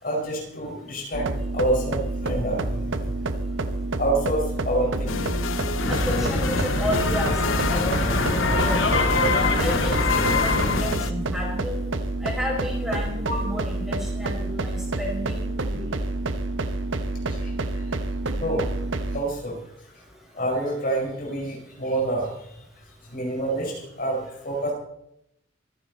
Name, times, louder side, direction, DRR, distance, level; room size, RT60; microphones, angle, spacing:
voice 1, 0.0-2.9 4.0-5.3 13.2-13.5 17.3-17.9 18.4-18.6 19.1-19.6 20.4-22.4 23.1-24.7, right 1 dB, 45° left, 0 dB, 5.1 m, -27 dB
sound 1, 1.1-19.2, right 2 dB, 75° right, 1.0 m, -28 dB
sound 2, 5.1-11.1, left 5 dB, 90° left, 0.8 m, -31 dB
sound 3, 5.8-10.8, left 2 dB, 65° left, 1.9 m, -24 dB
voice 2, 5.9-9.1 9.6-11.8 12.2-15.4 15.7-15.8, left 1 dB, ahead, -2 dB, 5.1 m, -32 dB
24.0 x 10.0 x 4.2 m, 0.78 s
head